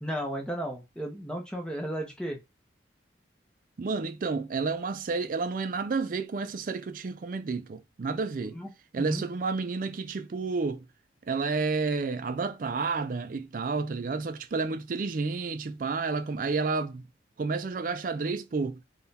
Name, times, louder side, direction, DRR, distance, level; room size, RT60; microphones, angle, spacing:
voice 1, 0.0-2.4 8.5-8.7 9.0-9.2, equal, 5° left, 0.8 m, -34 dB
voice 2, 3.8-8.6 8.9-10.9 11.3-17.0 17.4-18.8, right 4 dB, 45° right, 0.4 m, -30 dB
3.7 x 2.3 x 4.0 m
head